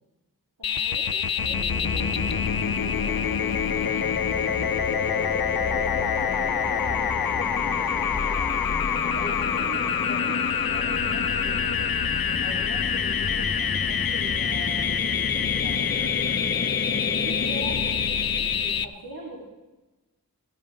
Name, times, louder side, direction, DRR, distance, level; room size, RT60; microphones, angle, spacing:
sound 1, 0.6-18.8, left 8 dB, 70° left, 0.5 m, -26 dB
voice 1, 0.6-2.0 2.6-3.9 4.5-8.5 9.0-11.9 12.4-16.4 16.9-17.8 18.4-19.4, right 1 dB, 75° right, -6 dB, 2.5 m, -42 dB
sound 2, 1.4-18.8, left 4 dB, 30° left, 0.5 m, -32 dB
16.5 x 14.0 x 3.3 m, 1.1 s
wide cardioid pair, 55°, 37 cm